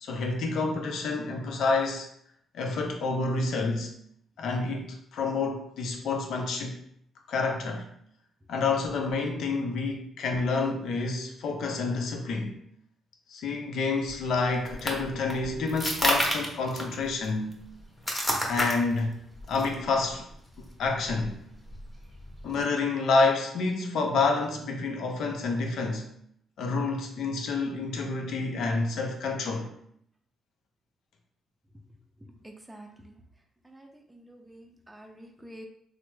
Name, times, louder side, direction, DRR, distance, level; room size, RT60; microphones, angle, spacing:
voice 1, 0.0-2.1 2.5-3.9 4.4-6.8 7.3-7.9 8.5-12.6 13.3-17.5 18.4-19.1 19.5-20.3 20.6-21.4 22.4-26.1 26.6-29.7, left 3 dB, 75° left, 3 dB, 0.6 m, -28 dB
sound 1, 14.1-22.6, equal, 10° left, 0.8 m, -32 dB
voice 2, 32.2-33.2 33.6-35.7, right 1 dB, 10° right, 2 dB, 0.5 m, -48 dB
3.2 x 2.0 x 3.1 m, 0.68 s
cardioid pair, 75°, 0 cm